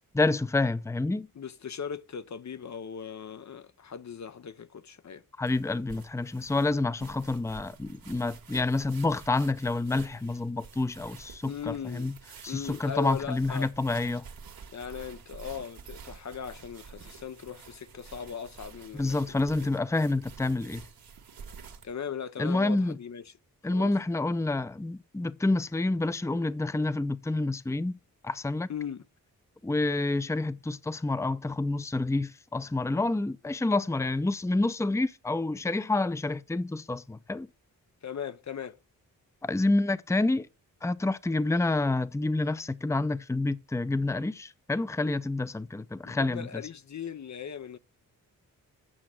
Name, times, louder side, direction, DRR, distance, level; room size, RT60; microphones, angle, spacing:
voice 1, 0.1-1.3 5.4-12.1 12.4-14.2 18.9-20.8 22.4-23.0 23.6-28.0 28.2-28.7 29.6-37.5 39.4-40.5 40.8-46.6, left 2 dB, 10° left, 0.7 m, -28 dB
voice 2, 1.4-5.2 11.4-12.1 12.5-13.7 14.7-19.8 21.8-23.3 23.7-23.9 28.7-29.0 38.0-38.8 46.0-47.8, left 7 dB, 45° left, 0.7 m, -39 dB
sound 1, 5.4-21.9, right 6 dB, 65° right, 1.8 m, -49 dB
8.8 x 5.9 x 7.5 m
cardioid pair, 55°, 38 cm